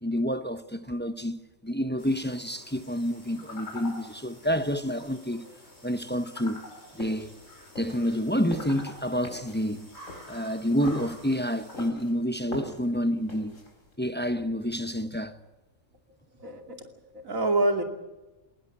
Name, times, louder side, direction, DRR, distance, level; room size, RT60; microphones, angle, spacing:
voice 1, 0.0-5.5 5.8-6.6 6.9-7.3 7.8-9.9 10.3-13.5 14.0-15.4, equal, 10° left, 0.9 m, -29 dB
sound 1, 2.0-11.9, left 2 dB, 50° left, 5.9 m, -47 dB
sound 2, 7.0-13.9, equal, 70° left, 4.8 m, -43 dB
voice 2, 16.4-17.8, right 2 dB, 80° right, 3.0 m, -27 dB
20.5 x 19.5 x 8.7 m
omnidirectional pair, 1.4 m